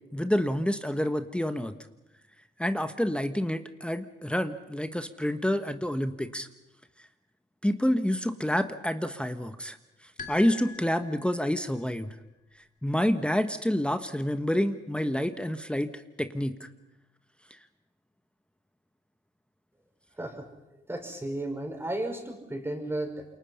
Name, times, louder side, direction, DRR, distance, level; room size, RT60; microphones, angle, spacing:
voice 1, 0.1-1.7 2.6-6.5 7.6-9.8 10.3-12.2 12.8-16.7 17.5-17.6, equal, 5° left, 9 dB, 1.2 m, -28 dB
sound 1, 10.2-11.7, left 4 dB, 40° left, 3.1 m, -44 dB
voice 2, 20.9-23.3, right 1 dB, 10° right, 3 dB, 5.4 m, -34 dB
28.0 x 23.5 x 5.7 m, 0.96 s
cardioid pair, 75°, 20 cm